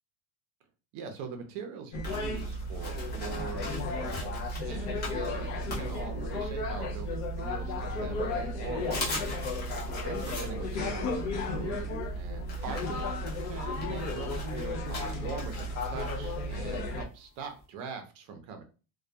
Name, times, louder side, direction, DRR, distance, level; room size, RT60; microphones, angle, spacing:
voice 1, 0.9-9.7 10.0-13.1 13.4-18.6, right 5 dB, 45° right, 6 dB, 0.6 m, -42 dB
sound 1, 1.9-17.0, left 1 dB, 40° left, 0.4 m, -34 dB
sound 2, 2.0-6.7 7.1-8.1 8.4-8.5 8.8-17.6, left 3 dB, 20° left, 0.9 m, -42 dB
2.6 x 2.3 x 2.2 m, 0.34 s
supercardioid pair, 150°, 44 cm